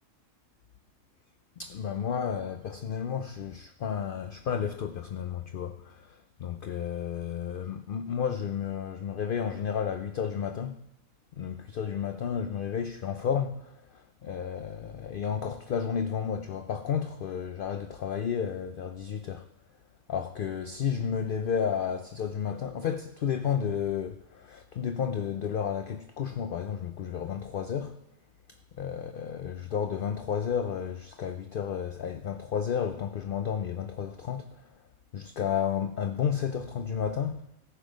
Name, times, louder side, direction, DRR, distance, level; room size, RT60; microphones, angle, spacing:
voice 1, 1.6-10.8 11.3-19.5 20.1-28.0 28.5-34.8 35.1-37.5, left 7 dB, 60° left, 0.6 m, -32 dB
14.0 x 7.0 x 5.1 m
omnidirectional pair, 1.4 m